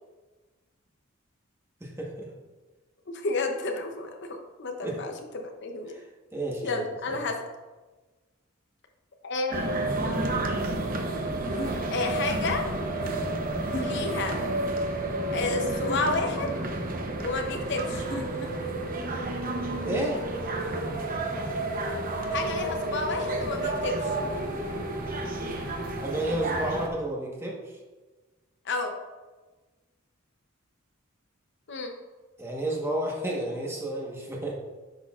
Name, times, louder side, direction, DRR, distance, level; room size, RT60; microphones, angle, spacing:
voice 1, 1.8-2.3 4.8-5.0 5.9-6.0 6.3-7.2 19.8-20.2 26.0-27.6 32.4-34.6, right 1 dB, 10° right, -2 dB, 1.2 m, -31 dB
voice 2, 3.1-6.0 6.6-7.4 9.2-10.3 11.9-12.7 13.8-14.4 15.3-16.6 17.2-18.0 22.3-24.2 28.6-28.9 31.7-31.9, left 3 dB, 55° left, 4 dB, 0.7 m, -31 dB
sound 1, 9.5-26.9, right 2 dB, 40° right, 0.8 m, -31 dB
sound 2, 11.5-12.8 13.6-14.2 15.7-16.5 17.9-18.7, equal, 70° left, 1.2 m, -38 dB
10.5 x 6.3 x 2.4 m, 1.3 s
head